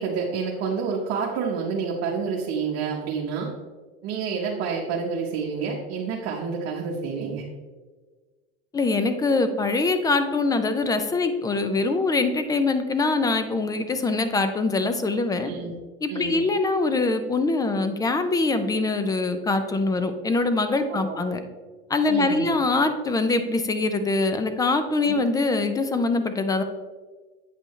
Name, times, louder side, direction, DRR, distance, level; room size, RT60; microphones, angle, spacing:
voice 1, 0.0-3.5 4.0-7.4 15.4-15.7 16.1-16.4 20.9-21.2 22.1-22.5 25.1-25.2, right 5 dB, 50° right, -2 dB, 1.1 m, -29 dB
voice 2, 8.7-15.5 16.0-21.4 21.9-26.6, left 3 dB, 10° left, 9 dB, 0.4 m, -23 dB
8.5 x 5.3 x 3.1 m, 1.4 s
supercardioid pair, 130°, 31 cm